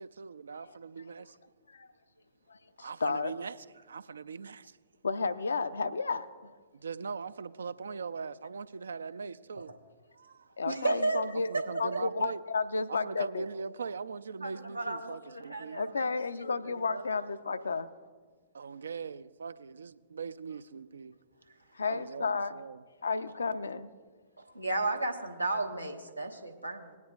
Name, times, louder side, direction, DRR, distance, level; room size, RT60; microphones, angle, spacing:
voice 1, 0.0-1.4 2.8-4.8 6.7-9.7 10.1-10.5 11.5-12.4 12.9-15.8 18.5-21.2 21.9-22.8, right 5 dB, 70° right, 0.3 m, -41 dB
voice 2, 2.5-3.3 5.0-6.5 10.6-11.5 11.8-13.5 15.7-17.9 21.7-22.5 23.0-23.9, left 4 dB, 75° left, 0.4 m, -32 dB
voice 3, 10.7-11.2 11.5-11.6 11.9-12.0 14.4-16.1 16.4-17.1 24.4-27.0, right 2 dB, 90° right, 0.9 m, -34 dB
20.5 x 9.5 x 2.3 m
figure-of-eight pair, 105°, 0 cm